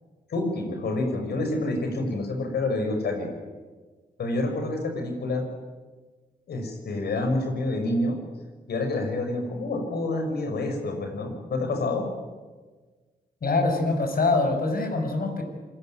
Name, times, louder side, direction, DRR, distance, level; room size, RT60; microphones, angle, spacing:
voice 1, 0.3-3.3 4.2-5.5 6.5-8.2 8.7-12.1, left 2 dB, 85° left, 5 dB, 6.0 m, -28 dB
voice 2, 13.4-15.4, left 3 dB, 65° left, 5 dB, 6.5 m, -24 dB
27.0 x 20.5 x 9.2 m, 1.4 s
cardioid pair, 55°, 16 cm